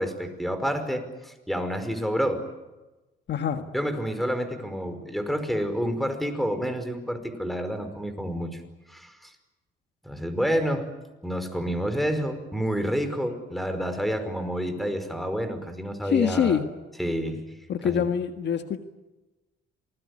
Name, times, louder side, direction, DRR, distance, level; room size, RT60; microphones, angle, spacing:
voice 1, 0.0-2.4 3.7-8.6 8.9-9.3 10.0-10.9 11.2-16.6 17.0-17.4 17.8-18.0, equal, ahead, 9 dB, 5.3 m, -29 dB
voice 2, 3.3-3.7 16.1-16.7 17.7-18.8, left 8 dB, 60° left, 7 dB, 1.7 m, -25 dB
28.5 x 20.5 x 9.9 m, 1.1 s
cardioid pair, 90°, 20 cm